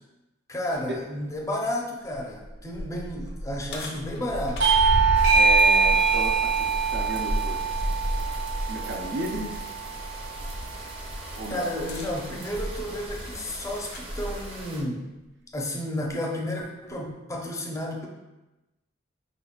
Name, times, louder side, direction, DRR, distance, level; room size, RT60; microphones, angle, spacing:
voice 1, 0.5-4.8 11.5-15.1 15.5-18.1, left 1 dB, 15° left, 0 dB, 0.5 m, -32 dB
sound 1, 0.7-0.8 1.3-1.4 2.0-8.7 9.1-9.3 11.7-14.2 15.1-15.2 16.1-16.2, equal, 60° left, 0.5 m, -33 dB
Bell / Doorbell, 4.6-9.7, right 5 dB, 85° right, 0.9 m, -23 dB
sound 2, 5.1-14.8, equal, 30° right, 0.7 m, -34 dB
voice 2, 5.3-7.6 8.7-9.6 11.3-11.7, right 2 dB, 65° right, 0 dB, 0.5 m, -33 dB
4.6 x 3.6 x 2.3 m, 1.0 s
head